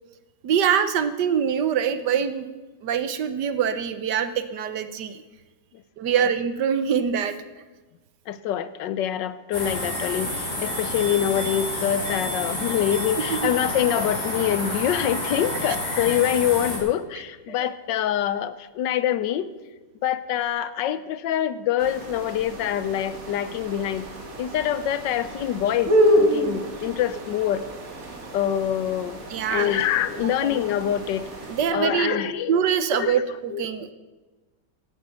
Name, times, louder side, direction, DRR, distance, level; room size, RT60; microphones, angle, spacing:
voice 1, 0.4-2.5 2.8-5.2 6.0-7.4 13.3-13.5 17.6-17.7 29.3-29.8 30.2-30.6 31.5-32.2 32.5-33.9, right 8 dB, 75° right, 12 dB, 1.5 m, -24 dB
voice 2, 8.3-19.5 20.0-24.1 24.4-27.7 28.3-31.3 31.7-32.6 32.9-33.2 33.5-33.6, left 10 dB, 80° left, 14 dB, 1.4 m, -25 dB
sound 1, 9.5-16.8, left 1 dB, 25° left, 4.5 m, -29 dB
sound 2, 21.8-31.6, equal, 50° right, 2.3 m, -28 dB
15.5 x 9.3 x 7.0 m, 1.2 s
omnidirectional pair, 1.9 m